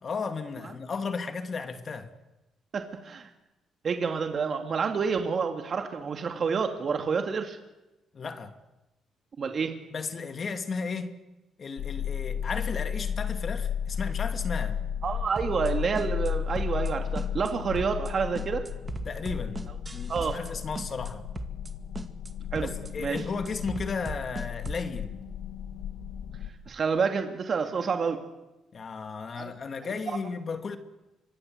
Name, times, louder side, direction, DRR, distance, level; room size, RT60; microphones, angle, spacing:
voice 1, 0.0-2.1 8.1-8.5 9.9-11.2 11.6-14.8 19.1-19.6 19.9-21.2 22.6-25.2 28.7-30.8, left 5 dB, 45° left, 2.5 m, -34 dB
voice 2, 2.7-3.3 3.8-7.6 9.4-9.8 15.0-18.7 20.1-20.4 22.5-22.7 23.0-23.2 26.7-28.2 29.4-29.5 29.8-29.9, right 5 dB, 50° right, 2.5 m, -28 dB
sound 1, 11.8-26.5, left 8 dB, 85° left, 2.6 m, -34 dB
sound 2, 15.4-15.7 16.0-16.3 16.6-16.9 17.2-17.5 17.8-18.1 18.4-20.5 20.8-21.1 21.4-21.7 22.0-22.3 22.6-22.9 23.2-24.9, right 3 dB, 25° right, 2.1 m, -38 dB
27.0 x 24.5 x 8.1 m
cardioid pair, 90°, 0 cm